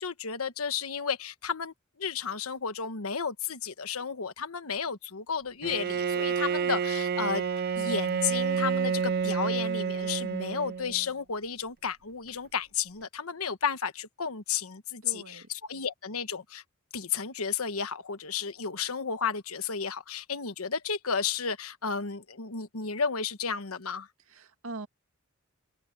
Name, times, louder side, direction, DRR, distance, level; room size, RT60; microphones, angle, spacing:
voice 1, 0.0-7.4 7.7-16.6 16.9-24.1, left 6 dB, 90° left, 1.2 m, -33 dB
Bowed string instrument, 5.6-11.1, right 6 dB, 45° right, 0.4 m, -29 dB
voice 2, 15.0-15.5 24.3-24.9, right 3 dB, 75° right, 2.2 m, -41 dB
head